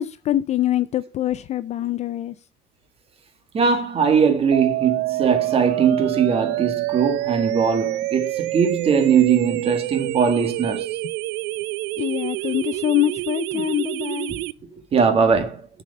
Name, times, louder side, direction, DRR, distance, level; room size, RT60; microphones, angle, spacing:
voice 1, 0.0-2.3 12.0-14.3, left 13 dB, 35° left, 0.4 m, -24 dB
voice 2, 3.5-10.9 14.3-14.4 14.7-15.7, right 6 dB, 30° right, 1.7 m, -20 dB
sound 1, 4.5-14.5, right 17 dB, 65° right, 0.4 m, -27 dB
7.3 x 5.0 x 6.5 m
cardioid pair, 135°, 20 cm